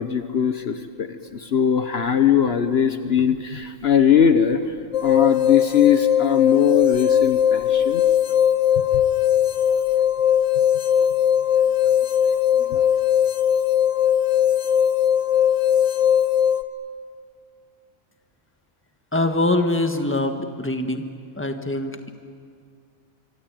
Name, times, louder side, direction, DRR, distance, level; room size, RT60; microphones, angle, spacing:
voice 1, 0.0-4.7 5.0-8.0 12.6-12.9, left 8 dB, 55° left, 9 dB, 1.2 m, -20 dB
sound 1, 4.9-16.6, left 9 dB, 80° left, 1.4 m, -19 dB
voice 2, 19.1-21.1 21.4-22.1, left 2 dB, 10° left, 6 dB, 1.5 m, -23 dB
25.5 x 25.0 x 9.0 m, 2.1 s
omnidirectional pair, 1.3 m